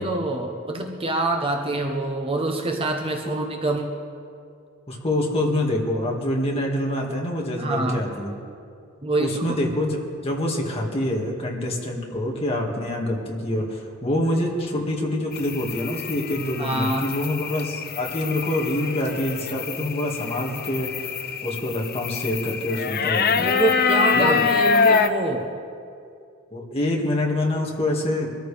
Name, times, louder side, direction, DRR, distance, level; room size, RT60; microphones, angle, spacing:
voice 1, 0.0-3.9 7.6-8.0 9.0-9.4 16.6-17.1 23.4-25.5, right 2 dB, 25° right, 3 dB, 0.9 m, -25 dB
voice 2, 4.9-8.3 9.2-10.0 10.2-21.1 21.4-23.4 24.1-24.5 26.5-28.3, left 1 dB, 25° left, -1 dB, 2.1 m, -26 dB
sound 1, 15.3-25.1, left 5 dB, 45° left, 0.6 m, -25 dB
23.5 x 13.5 x 3.5 m, 2.4 s
head